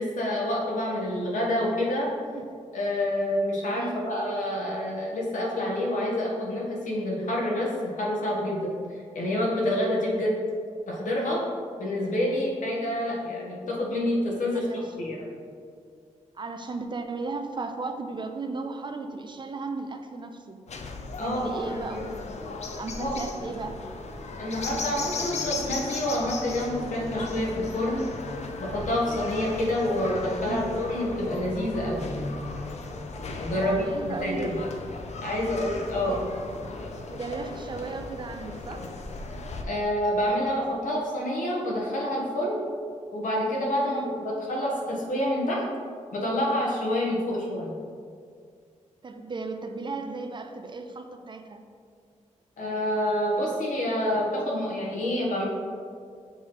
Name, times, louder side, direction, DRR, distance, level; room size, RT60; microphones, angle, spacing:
voice 1, 0.0-2.1 2.7-8.7 9.1-10.4 10.9-11.4 11.8-15.3 21.2-22.0 23.0-23.2 24.4-28.0 28.6-32.5 33.4-34.5 35.2-36.2 39.6-42.6 43.1-45.6 46.1-47.7 52.6-55.4, left 1 dB, 80° left, -3 dB, 1.3 m, -28 dB
voice 2, 3.7-4.2 14.5-14.9 16.3-20.6 21.2-22.3 22.8-23.8 30.4-30.8 33.5-34.5 35.9-36.2 37.1-38.9 43.8-44.1 49.0-51.6, right 3 dB, 35° right, 6 dB, 0.4 m, -35 dB
sound 1, 20.7-39.6, left 3 dB, 55° left, 0.5 m, -36 dB
6.6 x 3.1 x 4.7 m, 2.2 s
wide cardioid pair, 105°, 13 cm